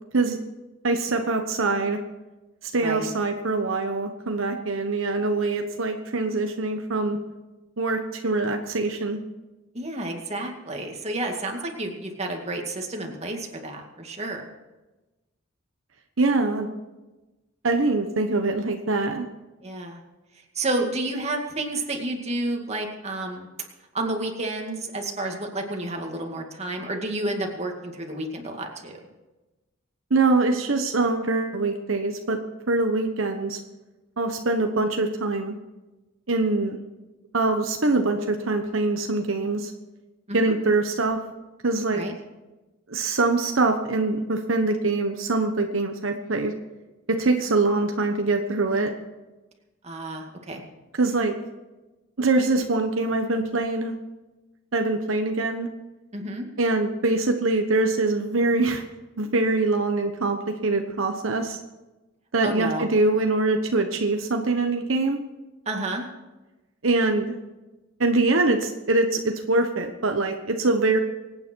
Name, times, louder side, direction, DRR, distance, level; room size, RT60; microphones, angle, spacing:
voice 1, 0.8-2.0 2.6-7.2 7.8-9.2 16.2-16.7 17.6-19.3 30.1-32.4 32.7-33.6 34.2-35.5 36.3-36.8 37.3-39.7 40.3-41.2 41.6-42.0 42.9-46.5 47.1-48.9 50.9-51.3 52.2-53.9 54.7-55.7 56.6-58.8 59.2-61.6 62.3-65.2 66.8-67.4 68.0-71.0, right 3 dB, 75° right, 4 dB, 1.2 m, -23 dB
voice 2, 9.7-14.4 19.6-20.0 20.6-23.5 23.9-29.0 40.3-40.5 41.9-42.1 49.8-50.6 56.1-56.5 62.4-62.9 65.7-66.1, right 2 dB, 35° right, 2 dB, 2.2 m, -30 dB
24.5 x 9.3 x 4.6 m, 1.1 s
head